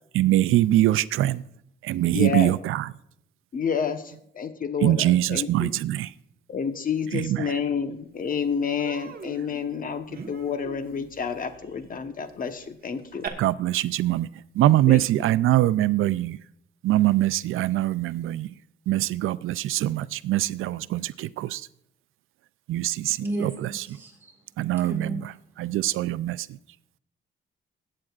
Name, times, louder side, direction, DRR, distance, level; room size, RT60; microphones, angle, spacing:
voice 1, 0.1-1.4 1.8-2.9 4.8-6.1 7.1-7.5 13.4-14.3 14.5-16.4 16.8-18.5 18.9-21.7 22.7-23.8 24.6-26.6, right 14 dB, 85° right, 0.4 m, -23 dB
voice 2, 2.1-2.5 3.5-5.7 6.5-13.3 14.9-15.0, left 6 dB, 45° left, 1.1 m, -29 dB
Human voice, 7.8-7.9 8.2-8.4 8.8-13.3, right 5 dB, 45° right, 1.3 m, -42 dB
voice 3, 23.2-24.3 24.8-25.2, right 2 dB, 10° right, 4.0 m, -33 dB
21.5 x 8.7 x 2.4 m
cardioid pair, 115°, 21 cm